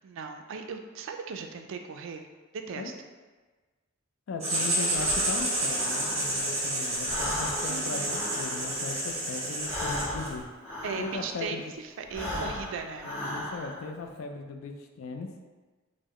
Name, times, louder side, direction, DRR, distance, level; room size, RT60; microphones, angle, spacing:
voice 1, 0.0-2.3 2.5-2.9 7.7-8.1 10.8-13.1, right 5 dB, 65° right, 6 dB, 0.3 m, -37 dB
voice 2, 4.3-10.4 11.0-11.7 12.3-12.5 13.0-15.3, left 4 dB, 70° left, 4 dB, 0.4 m, -38 dB
Writing, 4.4-10.4, right 1 dB, 30° right, 0.8 m, -30 dB
Breathing, 4.9-6.6 6.9-11.5 12.0-13.9, left 1 dB, 30° left, 0.8 m, -37 dB
3.7 x 2.0 x 3.0 m, 1.3 s
head